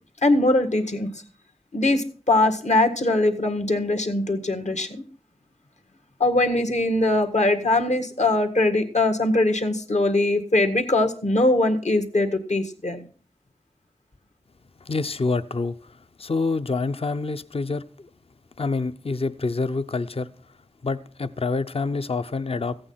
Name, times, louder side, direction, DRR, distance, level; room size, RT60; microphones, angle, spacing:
voice 1, 0.2-1.1 1.7-5.0 6.2-13.1, left 2 dB, 70° left, 1.7 m, -21 dB
voice 2, 14.8-18.1 18.6-20.3 20.8-22.8, left 3 dB, 50° left, 0.6 m, -27 dB
15.0 x 8.8 x 5.7 m
wide cardioid pair, 65°, 12 cm